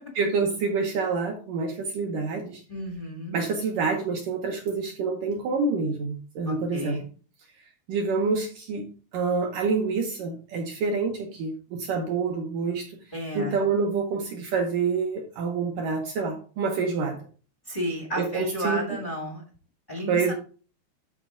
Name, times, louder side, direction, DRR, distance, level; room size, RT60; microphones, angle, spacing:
voice 1, 0.2-2.6 3.3-7.0 7.9-8.9 9.1-13.0 13.4-17.2 18.2-18.9 20.1-20.3, right 4 dB, 70° right, 2 dB, 2.0 m, -27 dB
voice 2, 2.7-3.4 6.4-7.1 13.1-13.6 17.7-19.4 19.9-20.3, equal, 85° left, 0 dB, 0.4 m, -32 dB
12.0 x 4.3 x 3.7 m, 0.39 s
omnidirectional pair, 4.8 m